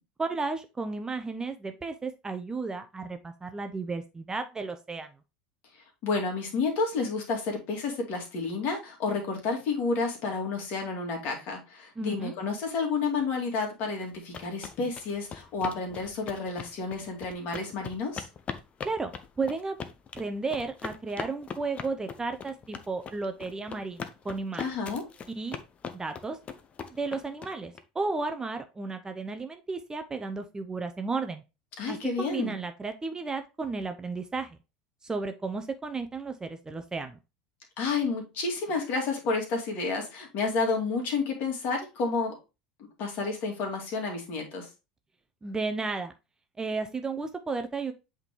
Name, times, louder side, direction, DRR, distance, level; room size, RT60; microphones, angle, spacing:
voice 1, 0.2-5.1 12.0-12.3 18.8-19.1 19.4-19.8 20.1-24.7 25.4-25.6 25.9-26.4 26.9-31.4 31.9-34.5 35.0-37.2 45.4-46.1 46.6-47.9, right 3 dB, 15° right, 7 dB, 0.7 m, -33 dB
voice 2, 5.7-18.3 24.6-25.0 31.8-32.6 37.8-42.3 43.0-44.7, left 4 dB, 50° left, 1 dB, 2.2 m, -30 dB
sound 1, 14.0-27.8, left 6 dB, 30° left, 0.8 m, -40 dB
8.1 x 3.7 x 3.1 m, 0.27 s
figure-of-eight pair, 75°, 4 cm